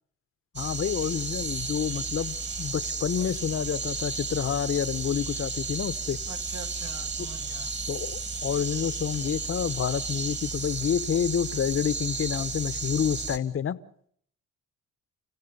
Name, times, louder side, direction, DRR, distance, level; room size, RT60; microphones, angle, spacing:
voice 1, 0.5-6.2 7.9-13.8, left 8 dB, 45° left, 1.1 m, -28 dB
sound 1, 0.6-13.4, right 4 dB, 40° right, 2.7 m, -33 dB
voice 2, 6.3-7.8, right 6 dB, 60° right, 2.2 m, -44 dB
30.0 x 16.0 x 6.8 m
cardioid pair, 90°, 30 cm